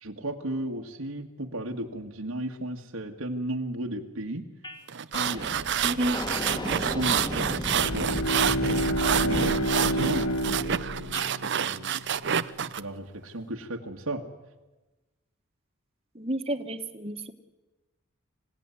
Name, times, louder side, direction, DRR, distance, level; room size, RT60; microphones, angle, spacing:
voice 1, 0.0-4.4 5.1-5.9 6.5-8.1 8.8-12.0 12.8-14.2, right 1 dB, 80° right, 1 dB, 1.8 m, -35 dB
sound 1, 4.6-4.8 5.1-11.3, equal, 20° left, 1.8 m, -36 dB
sound 2, 4.9-12.8, right 8 dB, 55° right, 0.7 m, -28 dB
voice 2, 5.8-6.2 16.1-17.3, right 1 dB, 30° right, 8 dB, 1.6 m, -30 dB
Bowed string instrument, 7.6-12.2, equal, 80° left, 1.3 m, -29 dB
26.0 x 16.5 x 9.8 m, 1.1 s
head